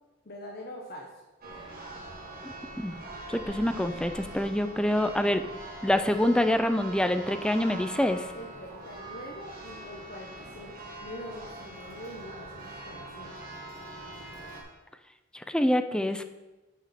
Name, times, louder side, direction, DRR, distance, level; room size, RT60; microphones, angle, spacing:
voice 1, 0.2-1.1 8.3-13.4, left 1 dB, 55° left, 0 dB, 0.9 m, -44 dB
Church bell, 1.4-14.6, right 2 dB, 50° right, 1.7 m, -43 dB
voice 2, 3.3-5.5 5.8-8.2 15.3-16.2, left 1 dB, 5° left, 8 dB, 0.4 m, -26 dB
6.2 x 6.0 x 5.8 m, 1.1 s
head